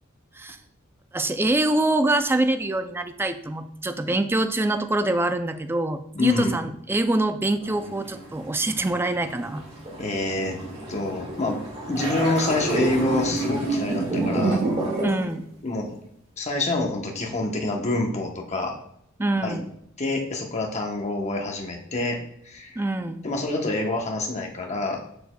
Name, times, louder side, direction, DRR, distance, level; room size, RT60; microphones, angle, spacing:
voice 1, 1.1-9.6 15.0-15.5 19.2-19.7 22.8-23.3, right 2 dB, 10° right, 9 dB, 0.3 m, -25 dB
voice 2, 6.1-6.5 9.9-10.6 10.9-11.6 11.9-14.6 15.6-16.0 16.4-18.7 19.4-19.6 20.0-22.2 22.4-22.8 23.2-25.0, left 2 dB, 35° left, 1 dB, 0.9 m, -26 dB
sound 1, 7.6-15.3, right 2 dB, 30° right, 1.7 m, -28 dB
6.6 x 6.4 x 2.2 m, 0.73 s
head